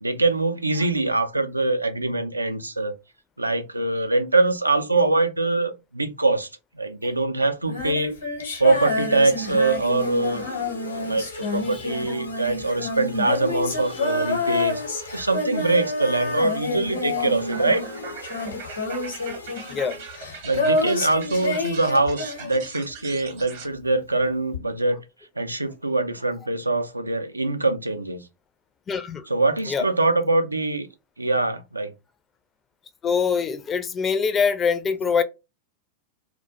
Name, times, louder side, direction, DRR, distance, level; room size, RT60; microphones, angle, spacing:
voice 1, 0.0-2.9 3.4-6.5 6.8-8.2 8.6-10.4 10.9-11.3 11.5-14.8 15.1-17.8 20.4-25.0 25.4-28.2 29.3-30.9 31.2-31.9, right 2 dB, 85° right, 0.3 m, -23 dB
Female singing, 7.6-23.0 24.5-24.6, left 3 dB, 70° left, 0.9 m, -28 dB
sound 1, 8.8-20.7, left 1 dB, 85° left, 0.5 m, -39 dB
sound 2, 16.7-23.7, right 5 dB, 50° right, 0.7 m, -40 dB
voice 2, 28.9-29.3 29.7-29.9 33.0-35.2, left 6 dB, 25° left, 0.4 m, -24 dB
2.3 x 2.1 x 2.8 m
figure-of-eight pair, 90°, 0 cm